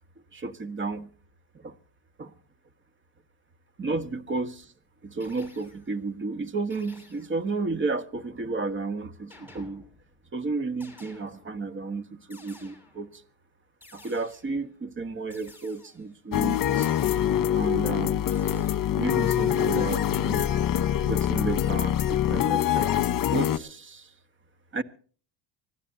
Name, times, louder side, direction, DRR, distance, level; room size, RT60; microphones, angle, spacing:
voice 1, 0.3-1.1 1.5-1.7 2.2-2.3 3.8-4.7 5.0-9.8 10.3-13.2 13.9-16.9 17.5-18.2 19.0-20.6 21.0-23.0 23.3-24.1 24.7-24.8, right 3 dB, 25° right, 1.6 m, -32 dB
sound 1, 5.2-6.0 6.7-7.5 9.3-10.2 10.8-11.7 12.3-13.2 13.8-14.7 15.3-16.2 16.8-17.6 18.3-18.8, left 2 dB, 5° right, 6.7 m, -53 dB
sound 2, 16.3-23.6, left 10 dB, 45° left, 1.4 m, -24 dB
24.5 x 16.5 x 2.8 m
cardioid pair, 105°, 45 cm